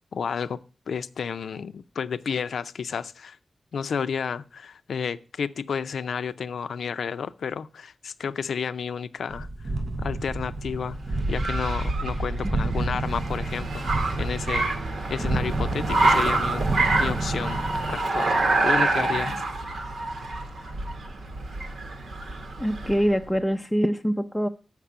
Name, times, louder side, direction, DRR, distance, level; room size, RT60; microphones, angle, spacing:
voice 1, 0.1-0.6 0.9-3.4 3.7-9.5 10.0-16.7 17.0-19.7, left 6 dB, 90° left, 0.5 m, -31 dB
sound 1, 9.3-18.0, right 2 dB, 40° right, 0.5 m, -30 dB
Car, 10.2-23.1, right 2 dB, 85° right, 1.6 m, -27 dB
voice 2, 22.6-24.5, equal, 5° left, 0.5 m, -24 dB
7.3 x 5.9 x 6.8 m
wide cardioid pair, 110°, 0 cm